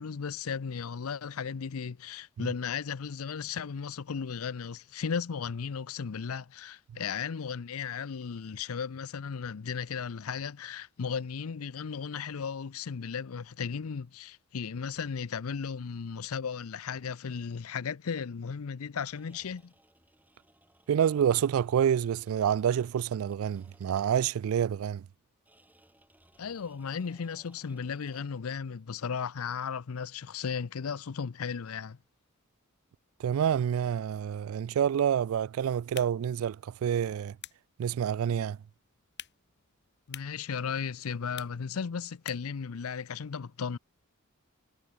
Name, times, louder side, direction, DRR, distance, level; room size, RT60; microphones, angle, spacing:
voice 1, 0.0-19.7 26.4-32.0 40.1-43.8, left 6 dB, 90° left, 0.6 m, -35 dB
sound 1, 19.0-24.4 25.5-28.5, right 1 dB, 10° right, 4.1 m, -64 dB
voice 2, 20.9-25.0 33.2-37.4 37.8-38.6, right 8 dB, 70° right, 0.3 m, -28 dB
sound 2, 35.8-42.7, left 11 dB, 55° left, 4.1 m, -51 dB
head